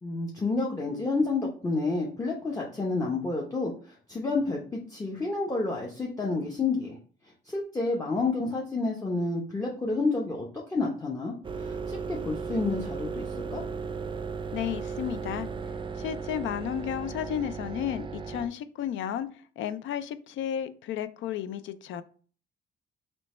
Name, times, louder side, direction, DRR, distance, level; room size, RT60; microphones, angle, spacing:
voice 1, 0.0-3.7 4.1-7.0 7.4-13.3 13.5-13.6, left 3 dB, 15° left, 0.8 m, -29 dB
sound 1, 11.4-18.5, right 5 dB, 25° right, 0.4 m, -36 dB
voice 2, 14.5-15.5 16.0-19.3 19.6-22.0, left 10 dB, 75° left, 0.4 m, -33 dB
3.1 x 3.1 x 4.2 m
cardioid pair, 90°, 20 cm